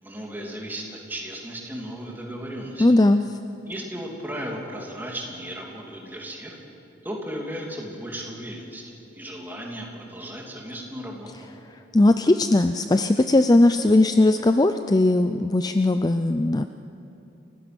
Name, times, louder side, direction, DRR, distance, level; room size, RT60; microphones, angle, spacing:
voice 1, 0.0-2.9 3.7-6.6 7.0-11.5, equal, 10° right, -2 dB, 2.9 m, -35 dB
voice 2, 2.8-3.2 11.9-16.6, left 2 dB, 20° left, 9 dB, 0.4 m, -18 dB
29.5 x 15.5 x 6.1 m, 2.8 s
head